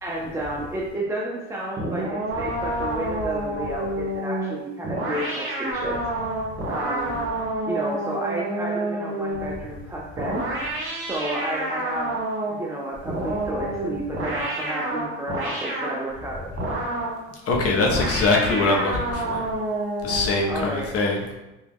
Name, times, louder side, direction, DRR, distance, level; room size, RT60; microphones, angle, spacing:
voice 1, 0.0-6.0 6.7-7.2 7.6-10.5 11.0-12.2 12.5-16.5 20.5-20.9, right 1 dB, 10° right, -4 dB, 0.3 m, -31 dB
sound 1, 1.8-9.6 10.2-12.7 13.1-16.0 16.6-17.2 17.8-20.7, right 1 dB, 35° right, 1.3 m, -29 dB
voice 2, 17.5-19.5 20.0-21.2, left 3 dB, 40° left, 0 dB, 0.6 m, -22 dB
2.9 x 2.2 x 3.4 m, 0.98 s
hypercardioid pair, 85°, 37 cm